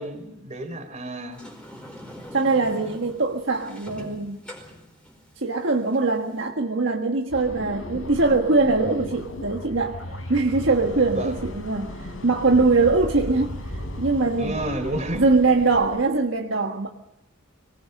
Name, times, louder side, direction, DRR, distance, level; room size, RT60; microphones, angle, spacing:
voice 1, 0.0-1.4 11.1-11.3 14.4-15.2, right 1 dB, 35° right, 6 dB, 4.0 m, -30 dB
Sliding door, 1.3-6.5, equal, 5° left, 4.7 m, -43 dB
voice 2, 2.3-4.4 5.4-10.0 10.3-14.6 15.1-16.9, right 3 dB, 65° right, 2 dB, 1.6 m, -22 dB
sound 1, 7.3-16.1, left 1 dB, 90° left, 4.7 m, -36 dB
25.5 x 19.5 x 6.6 m, 0.85 s
head